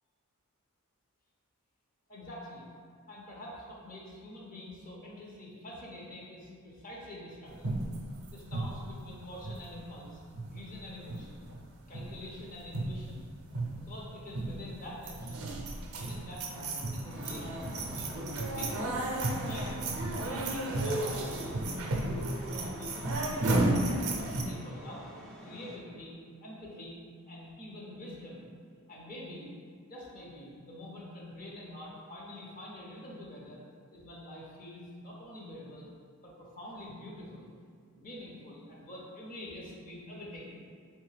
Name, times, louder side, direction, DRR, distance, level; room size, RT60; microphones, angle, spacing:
voice 1, 2.1-2.6 3.1-7.7 8.3-10.2 10.5-11.4 11.9-13.3 13.7-15.5 15.9-19.8 20.3-22.2 22.6-25.0 25.4-27.0 27.2-28.5 28.9-29.5 29.9-33.6 33.9-35.9 36.2-37.5 37.9-40.7, left 1 dB, 40° left, -5 dB, 0.7 m, -46 dB
sound 1, 7.6-10.1 10.3-10.8 11.1-11.7 11.9-12.2 12.6-13.2 13.5-13.9 14.3-14.7 15.0-24.4, right 2 dB, 70° right, 0.5 m, -33 dB
sound 2, 17.1-25.8, equal, ahead, 0.3 m, -49 dB
3.4 x 3.1 x 3.2 m, 2.1 s
head